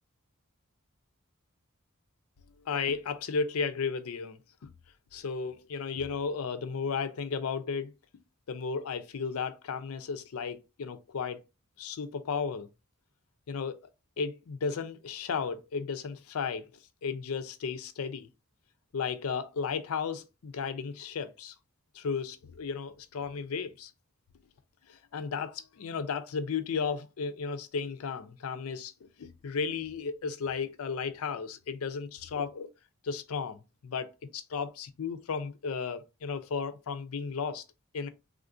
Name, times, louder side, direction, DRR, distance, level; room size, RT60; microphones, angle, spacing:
voice 1, 2.7-4.7 5.1-7.9 8.5-11.4 11.8-12.7 13.5-13.8 14.2-16.7 17.0-18.3 18.9-21.5 21.9-23.9 24.9-28.9 29.2-32.7 33.0-37.6 37.9-38.1, left 5 dB, 75° left, 0.4 m, -34 dB
3.5 x 2.4 x 2.5 m
head